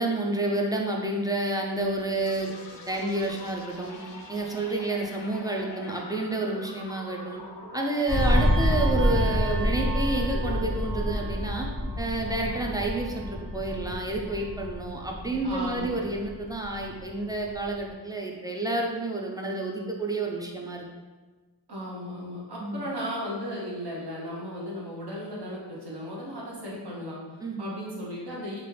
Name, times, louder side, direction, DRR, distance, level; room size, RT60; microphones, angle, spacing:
voice 1, 0.0-7.4 7.7-11.7 12.0-20.9 22.6-22.8 27.4-27.7, right 2 dB, 10° right, -1 dB, 0.4 m, -30 dB
sound 1, 2.3-15.9, left 2 dB, 75° left, 0.5 m, -44 dB
sound 2, 8.1-17.1 17.5-17.7, equal, 35° right, 1.1 m, -28 dB
voice 2, 15.4-16.0 21.7-28.6, equal, 65° right, -5 dB, 0.9 m, -36 dB
3.1 x 2.4 x 3.1 m, 1.3 s
wide cardioid pair, 80°, 42 cm